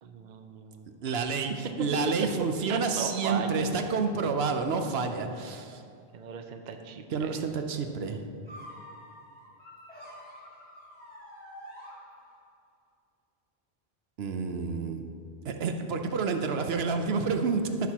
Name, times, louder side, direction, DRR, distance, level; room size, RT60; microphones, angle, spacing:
voice 1, 0.0-1.0 2.7-3.7 6.1-7.4, right 5 dB, 50° right, 6 dB, 0.7 m, -37 dB
voice 2, 1.0-5.8 7.1-8.2 14.2-15.0 15.4-17.8, right 4 dB, 80° right, 6 dB, 0.9 m, -29 dB
sound 1, 8.4-12.6, equal, 30° right, 2.5 m, -48 dB
14.5 x 6.2 x 2.9 m, 2.3 s
omnidirectional pair, 1.0 m